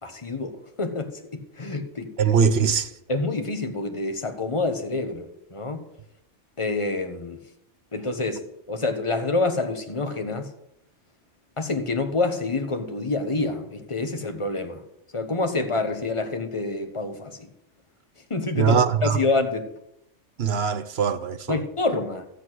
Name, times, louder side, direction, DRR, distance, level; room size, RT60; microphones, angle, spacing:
voice 1, 0.0-2.1 3.1-5.8 6.6-7.4 7.9-10.5 11.6-14.8 15.1-17.5 18.3-19.7 21.5-22.2, left 3 dB, 25° left, 1.2 m, -27 dB
voice 2, 2.2-2.9 18.5-19.2 20.4-21.6, right 6 dB, 60° right, 1.0 m, -22 dB
13.0 x 8.4 x 6.3 m
omnidirectional pair, 1.3 m